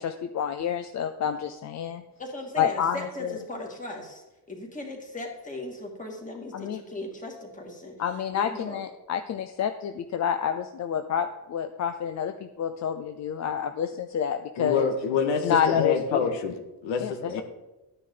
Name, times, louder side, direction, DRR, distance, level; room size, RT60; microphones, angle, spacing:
voice 1, 0.0-2.0 2.6-3.4 6.5-6.8 8.0-14.9 15.4-16.4 17.0-17.4, left 8 dB, 40° left, 8 dB, 0.5 m, -28 dB
voice 2, 2.2-7.9 8.3-8.8, left 1 dB, 15° left, 1 dB, 2.3 m, -38 dB
voice 3, 14.6-17.4, left 6 dB, 85° left, 5 dB, 1.7 m, -27 dB
13.5 x 9.7 x 3.9 m, 1.0 s
cardioid pair, 160°, 44 cm